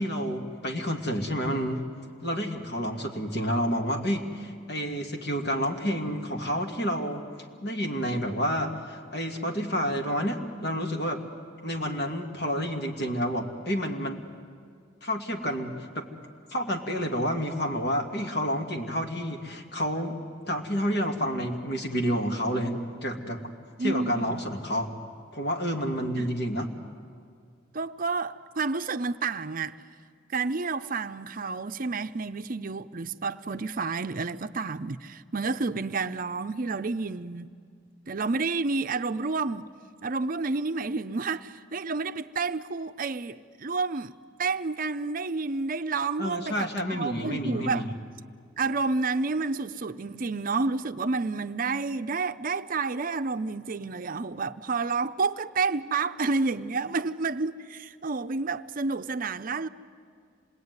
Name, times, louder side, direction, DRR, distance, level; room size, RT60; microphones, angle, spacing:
voice 1, 0.0-1.8 2.2-7.2 7.6-11.2 11.6-14.2 15.0-16.1 16.5-20.2 20.5-23.4 23.8-24.9 25.3-26.7 46.2-47.9, equal, 60° left, 2.4 m, -29 dB
voice 2, 23.8-24.4 26.2-26.3 27.7-29.7 30.3-37.5 38.1-39.7 40.0-44.1 44.4-47.8 48.6-59.7, right 4 dB, 45° right, 0.6 m, -30 dB
27.0 x 20.0 x 9.6 m
head